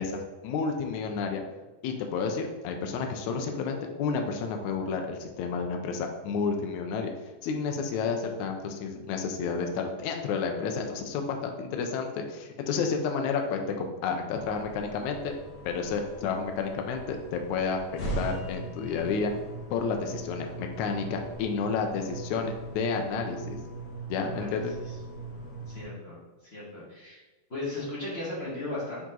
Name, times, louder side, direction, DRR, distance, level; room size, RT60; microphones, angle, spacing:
voice 1, 0.0-1.4 1.8-7.1 7.4-15.3 15.6-17.8 18.2-19.3 19.7-23.6 24.1-24.7, left 5 dB, 90° left, 4 dB, 1.6 m, -31 dB
voice 2, 8.6-9.0 24.1-24.5 25.7-26.2 26.5-27.2 27.5-29.0, left 2 dB, 30° left, -8 dB, 1.3 m, -36 dB
sound 1, 14.4-25.9, right 2 dB, 75° left, 3.2 m, -40 dB
7.4 x 4.1 x 3.8 m, 1.1 s
omnidirectional pair, 4.4 m